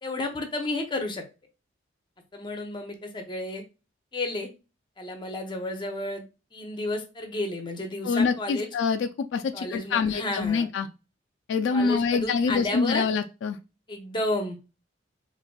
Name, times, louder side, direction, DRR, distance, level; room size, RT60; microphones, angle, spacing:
voice 1, 0.0-1.2 2.3-3.6 4.1-4.5 5.0-6.2 6.5-8.7 9.5-10.7 11.7-13.0 13.9-14.6, left 2 dB, 25° left, 4 dB, 0.6 m, -32 dB
voice 2, 8.0-10.9 11.5-13.6, left 5 dB, 75° left, 7 dB, 0.3 m, -25 dB
3.9 x 2.6 x 2.2 m, 0.30 s
head